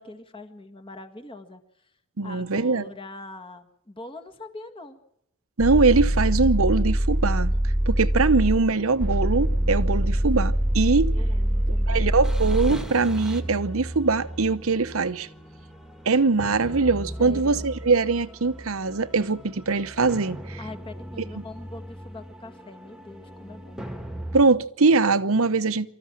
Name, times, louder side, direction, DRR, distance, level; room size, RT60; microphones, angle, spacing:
voice 1, 0.0-1.9 2.2-5.0 11.1-12.1 17.2-17.7 20.6-23.8, left 2 dB, 25° left, 1.8 m, -42 dB
voice 2, 2.2-2.8 5.6-7.5 7.9-11.1 11.9-15.3 16.1-20.6 24.3-25.9, right 4 dB, 70° right, 0.9 m, -22 dB
sound 1, 5.6-24.4, right 1 dB, 5° right, 1.7 m, -27 dB
25.0 x 14.0 x 7.5 m
head